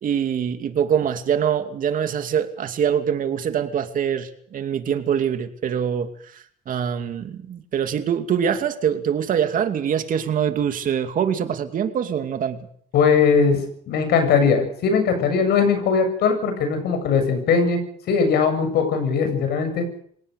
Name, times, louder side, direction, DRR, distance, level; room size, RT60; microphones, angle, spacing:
voice 1, 0.0-12.6, right 8 dB, 55° right, 7 dB, 2.6 m, -24 dB
voice 2, 12.9-13.6 13.9-17.8 18.1-19.9, left 5 dB, 75° left, 8 dB, 7.7 m, -19 dB
26.5 x 18.0 x 6.7 m, 0.62 s
cardioid pair, 110°, 17 cm